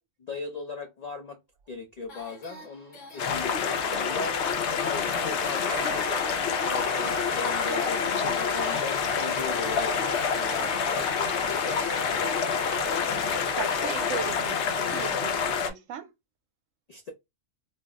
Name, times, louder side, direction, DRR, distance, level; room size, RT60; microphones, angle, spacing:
voice 1, 0.2-1.4 1.7-4.4 4.8-11.8 16.9-17.1, left 4 dB, 90° left, 0.3 m, -39 dB
sound 1, 2.1-13.2, left 1 dB, 40° left, 1.0 m, -48 dB
sound 2, 3.2-15.7, left 6 dB, 65° left, 0.8 m, -27 dB
sound 3, 4.4-14.2, right 2 dB, 55° right, 0.9 m, -39 dB
voice 2, 13.1-16.1, right 7 dB, 75° right, 1.0 m, -38 dB
2.6 x 2.0 x 3.5 m
omnidirectional pair, 1.3 m